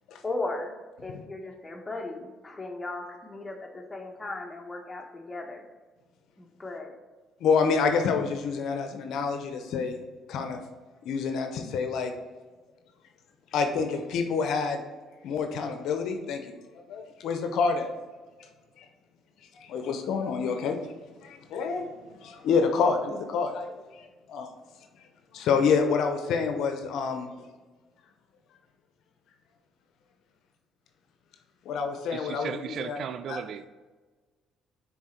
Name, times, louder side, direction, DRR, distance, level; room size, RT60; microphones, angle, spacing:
voice 1, 0.2-0.7 1.0-5.6 6.4-7.0, left 2 dB, 20° left, 2 dB, 1.3 m, -36 dB
voice 2, 7.4-10.0 10.3-10.6 11.1-12.1 13.5-14.8 15.2-16.5 16.9-17.9 19.7-20.8 21.2-24.0 24.3-24.5 25.3-27.3 31.7-33.0 33.3-33.4, left 5 dB, 70° left, 5 dB, 0.7 m, -27 dB
voice 3, 32.1-33.7, right 8 dB, 60° right, 12 dB, 0.4 m, -36 dB
6.1 x 4.1 x 4.4 m, 1.3 s
supercardioid pair, 70°, 0 cm